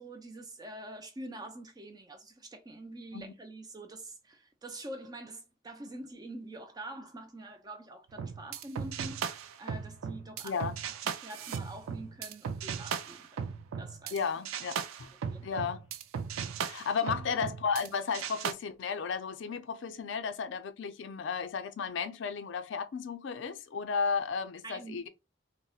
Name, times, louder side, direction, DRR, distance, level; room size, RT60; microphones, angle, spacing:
voice 1, 0.0-10.6 11.1-13.5 13.8-14.2 15.3-15.7 17.1-17.2 24.6-25.0, right 1 dB, 20° right, 0.3 m, -45 dB
sound 1, 8.1-14.2 14.4-17.9 18.1-18.5, right 7 dB, 90° right, 0.4 m, -37 dB
voice 2, 10.4-10.8 14.1-15.1 15.4-15.8 16.7-25.1, left 5 dB, 65° left, 0.4 m, -34 dB
4.0 x 2.0 x 2.3 m
head